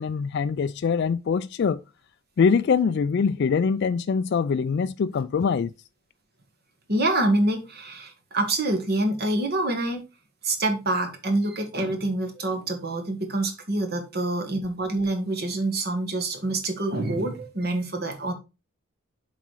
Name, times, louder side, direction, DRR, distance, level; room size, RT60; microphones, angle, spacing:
voice 1, 0.0-1.8 2.4-5.7, left 5 dB, 50° left, 0.3 m, -23 dB
voice 2, 6.9-10.0 10.4-18.3, right 2 dB, 45° right, 1.6 m, -26 dB
7.3 x 4.2 x 4.7 m
head